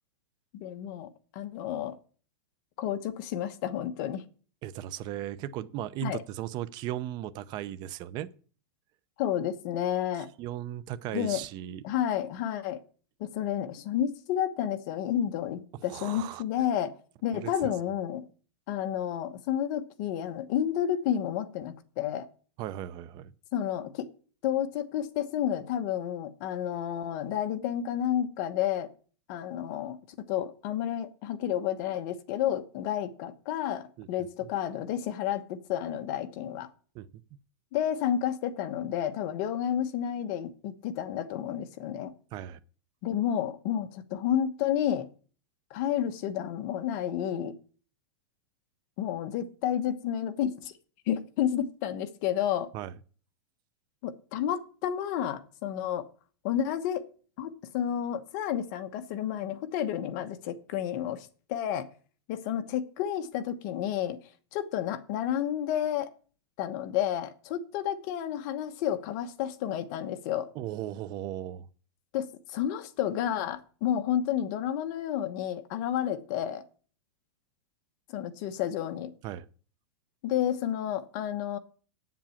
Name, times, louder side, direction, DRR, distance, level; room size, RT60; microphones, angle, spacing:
voice 1, 0.6-2.0 2.8-4.2 6.0-6.2 9.2-10.3 11.1-11.4 11.8-12.8 13.2-17.0 17.2-18.3 18.7-22.3 23.5-24.1 24.4-28.9 29.3-36.7 37.7-42.1 43.0-45.1 45.7-47.6 49.0-50.7 51.1-52.7 54.0-56.1 56.4-57.1 57.4-61.9 62.3-64.2 64.5-66.1 66.6-70.5 72.1-76.6 78.1-79.1 80.2-81.6, left 10 dB, 45° left, 1.1 m, -31 dB
voice 2, 4.6-8.3 10.4-11.8 15.9-16.4 17.3-17.7 22.6-23.3 34.0-34.1 34.4-34.5 36.9-37.1 42.3-42.6 52.7-52.9 70.5-71.7 79.2-79.4, right 12 dB, 30° right, 0.6 m, -36 dB
8.9 x 7.5 x 7.2 m
supercardioid pair, 155°, 14 cm